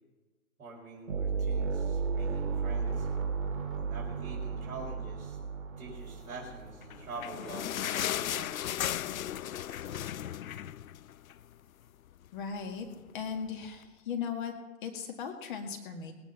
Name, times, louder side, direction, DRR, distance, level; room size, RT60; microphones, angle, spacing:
voice 1, 0.6-3.1 3.8-5.4 5.8-8.6, right 3 dB, 25° right, -6 dB, 5.1 m, -45 dB
sound 1, 1.1-7.5, right 5 dB, 65° right, 3.7 m, -34 dB
sound 2, 6.8-11.5 11.9-12.0 12.2-12.4 13.1-13.2, left 11 dB, 70° left, 0.5 m, -35 dB
voice 2, 12.3-12.9 13.1-14.5 14.8-16.1, left 6 dB, 35° left, 4 dB, 1.9 m, -37 dB
19.0 x 10.0 x 5.5 m, 1.2 s
hypercardioid pair, 145°, 43 cm